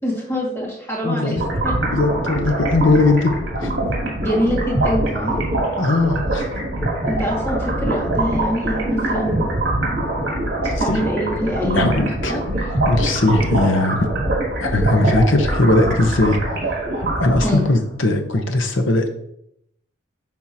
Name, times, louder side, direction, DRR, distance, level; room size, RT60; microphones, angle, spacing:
voice 1, 0.0-1.7 4.2-5.4 7.1-9.5 10.8-12.4 17.4-17.7, equal, 15° left, -4 dB, 2.0 m, -24 dB
voice 2, 1.0-1.4 1.9-3.3 3.6-3.7 5.8-6.5 10.9-11.0 11.7-12.3 12.9-14.1 14.6-16.4 17.2-19.1, left 2 dB, 75° left, 6 dB, 0.9 m, -19 dB
sound 1, 1.4-17.8, right 1 dB, 55° right, 2.3 m, -23 dB
10.5 x 3.7 x 2.8 m, 0.74 s
head